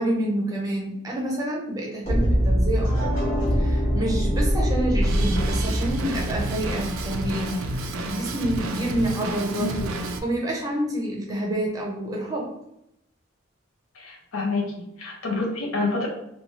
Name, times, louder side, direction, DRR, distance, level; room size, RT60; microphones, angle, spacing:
voice 1, 0.0-3.2 3.5-9.9 10.2-12.5, right 1 dB, 15° right, -2 dB, 0.6 m, -28 dB
sound 1, 2.0-8.0, equal, 35° left, 1.0 m, -24 dB
Drum kit, 5.0-10.2, right 2 dB, 80° right, 0.4 m, -31 dB
voice 2, 9.5-9.8 13.9-16.1, left 3 dB, 90° left, -1 dB, 0.6 m, -28 dB
2.7 x 2.2 x 2.9 m, 0.80 s
head